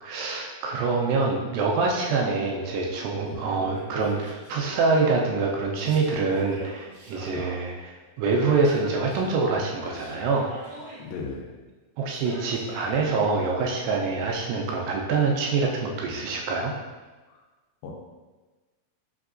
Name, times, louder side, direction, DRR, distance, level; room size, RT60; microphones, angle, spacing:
voice 1, 0.0-7.7 8.2-10.5 12.0-16.7, right 4 dB, 80° right, 0 dB, 2.1 m, -25 dB
Yell, 3.7-5.0 5.8-7.5 8.3-9.5 9.8-11.0 12.1-13.1, right 1 dB, 55° right, 1.7 m, -43 dB
voice 2, 11.0-11.5 17.3-17.4 17.8-18.0, left 4 dB, 80° left, 0 dB, 2.2 m, -36 dB
5.3 x 3.4 x 2.5 m, 1.3 s
omnidirectional pair, 4.2 m